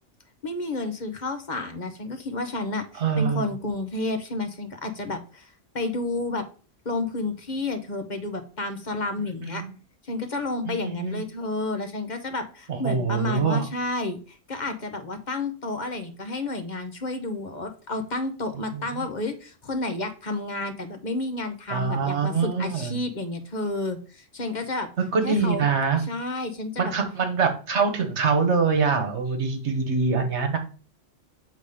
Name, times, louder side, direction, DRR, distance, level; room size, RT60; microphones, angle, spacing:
voice 1, 0.4-6.4 6.8-9.6 10.0-24.9 25.2-25.6 26.0-26.9, left 2 dB, 40° left, 6 dB, 1.0 m, -31 dB
voice 2, 3.0-3.5 9.5-9.7 10.7-11.2 12.7-13.6 18.7-18.8 21.7-22.9 25.1-26.0 26.8-30.6, right 5 dB, 60° right, 6 dB, 1.4 m, -24 dB
7.1 x 3.8 x 5.1 m, 0.37 s
omnidirectional pair, 1.3 m